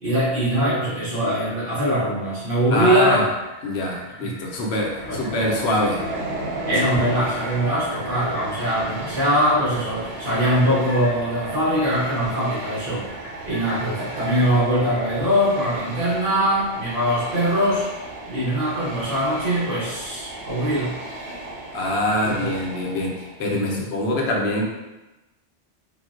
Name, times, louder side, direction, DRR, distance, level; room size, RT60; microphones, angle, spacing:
voice 1, 0.0-3.3 4.2-4.3 5.1-5.2 6.6-13.1 13.4-17.8 18.3-21.0 22.2-22.5 23.5-23.8, equal, 60° right, -9 dB, 1.0 m, -22 dB
voice 2, 2.7-3.2 3.6-6.0 7.0-7.1 21.7-24.6, left 1 dB, 85° left, -1 dB, 0.9 m, -24 dB
sound 1, 3.4-15.5 15.9-16.0, equal, 60° left, 0.6 m, -43 dB
Train, 4.6-23.5, right 2 dB, 90° right, 0.8 m, -34 dB
3.8 x 2.1 x 2.4 m, 1.0 s
omnidirectional pair, 1.1 m